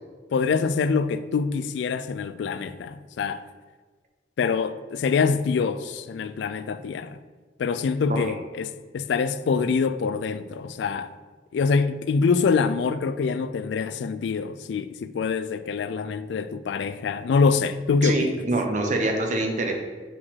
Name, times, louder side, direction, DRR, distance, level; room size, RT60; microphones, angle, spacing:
voice 1, 0.3-3.4 4.4-7.2 7.6-11.1 11.5-18.3, left 5 dB, 70° left, 0.3 m, -25 dB
voice 2, 18.0-19.7, right 2 dB, 40° right, 0.8 m, -25 dB
4.6 x 4.3 x 5.7 m
head